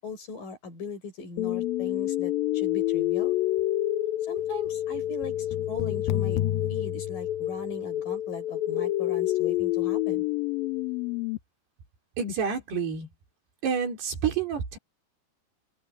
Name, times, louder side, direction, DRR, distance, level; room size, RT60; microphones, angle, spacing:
voice 1, 0.0-3.4 4.3-5.3 5.7-10.3, left 4 dB, 55° left, 7.0 m, -39 dB
sound 1, 1.4-11.4, left 14 dB, 80° left, 2.2 m, -28 dB
voice 2, 12.2-13.1 13.6-14.8, right 6 dB, 70° right, 6.2 m, -28 dB
omnidirectional pair, 4.8 m